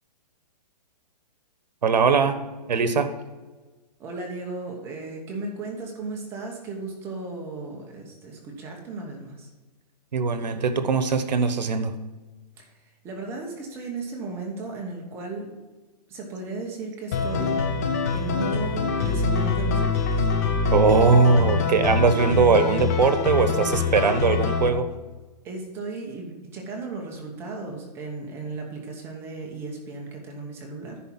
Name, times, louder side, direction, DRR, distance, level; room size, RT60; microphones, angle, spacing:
voice 1, 1.8-2.4 2.7-3.1 10.1-12.0 20.7-24.8, right 5 dB, 85° right, 10 dB, 1.2 m, -20 dB
voice 2, 4.0-9.5 12.6-15.6 16.1-17.6 18.1-20.3 22.5-22.8 25.4-31.0, right 3 dB, 10° right, 0 dB, 1.0 m, -35 dB
sound 1, 17.1-24.7, left 5 dB, 25° left, 0.6 m, -24 dB
10.0 x 4.4 x 7.4 m, 1.2 s
hypercardioid pair, 170°, 21 cm